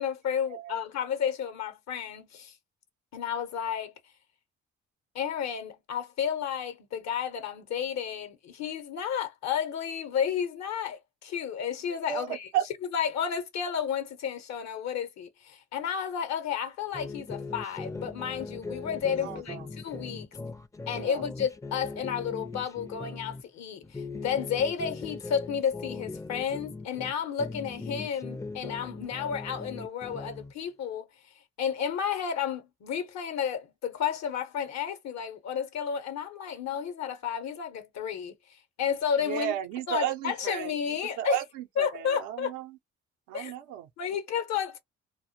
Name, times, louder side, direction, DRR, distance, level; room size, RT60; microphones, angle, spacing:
voice 1, 0.0-2.5 3.1-3.9 5.1-12.5 12.9-20.3 20.9-31.1 31.6-39.5 39.9-41.4 41.8-42.5 43.3-43.5 44.0-44.8, left 8 dB, 70° left, 0.8 m, -32 dB
voice 2, 0.5-0.8 12.1-12.3 12.5-12.6 19.2-19.7 20.9-21.2 39.2-42.8 43.3-43.9, right 12 dB, 90° right, 0.6 m, -34 dB
sound 1, 16.9-23.4 23.8-27.1 27.4-30.5, left 3 dB, 10° left, 0.4 m, -40 dB
2.1 x 2.1 x 2.8 m
supercardioid pair, 65°, 29 cm